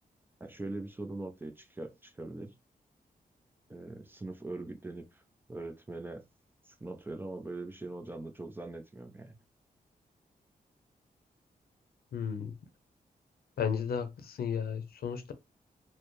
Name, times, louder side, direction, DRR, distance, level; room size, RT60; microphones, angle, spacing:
voice 1, 0.4-2.5 3.7-5.2 5.5-6.2 6.7-9.3, right 2 dB, 15° right, 0.5 m, -41 dB
voice 2, 12.1-12.5 13.6-15.3, left 7 dB, 80° left, 0.7 m, -33 dB
4.2 x 2.1 x 3.1 m
wide cardioid pair, 145°, 15 cm